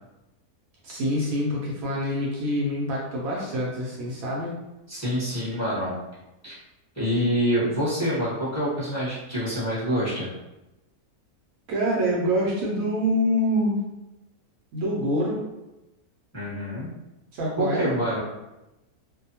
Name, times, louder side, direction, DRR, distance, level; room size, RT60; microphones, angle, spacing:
voice 1, 0.8-4.5 11.7-13.8 14.7-15.5 17.3-17.9, equal, 70° right, -4 dB, 0.9 m, -26 dB
voice 2, 4.9-6.0 6.4-6.6 6.9-10.3 16.3-16.9 17.6-18.2, equal, 10° left, -11 dB, 0.9 m, -26 dB
2.6 x 2.1 x 2.7 m, 0.99 s
omnidirectional pair, 1.6 m